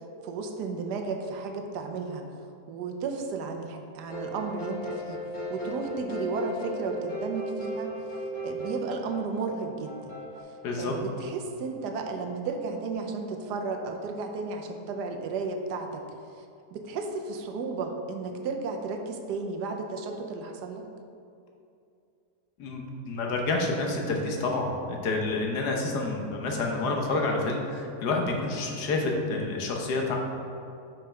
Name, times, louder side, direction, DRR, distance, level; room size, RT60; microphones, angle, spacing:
voice 1, 0.2-2.3 2.7-5.2 5.5-7.9 8.4-10.2 10.8-16.0 16.4-16.5 16.7-20.9, right 4 dB, 90° right, 4 dB, 1.3 m, -33 dB
sound 1, 4.1-10.4, equal, 50° left, 2.1 m, -36 dB
voice 2, 10.6-10.9 22.6-30.2, left 3 dB, 80° left, 1 dB, 1.5 m, -28 dB
5.7 x 5.4 x 4.9 m, 2.5 s
omnidirectional pair, 1.7 m